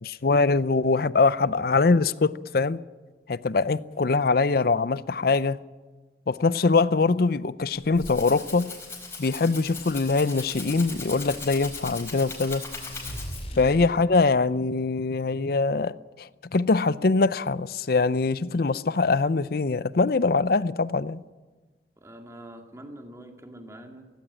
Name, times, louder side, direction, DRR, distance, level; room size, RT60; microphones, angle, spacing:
voice 1, 0.0-2.8 3.3-5.6 6.3-8.7 9.2-12.6 13.6-21.2, left 3 dB, 55° left, 0.6 m, -23 dB
Rattle (instrument), 7.7-13.6, left 3 dB, 15° left, 4.7 m, -39 dB
sound 1, 12.7-14.5, equal, 30° left, 4.9 m, -38 dB
voice 2, 22.0-24.1, right 1 dB, 15° right, 2.1 m, -45 dB
17.5 x 16.5 x 9.9 m
head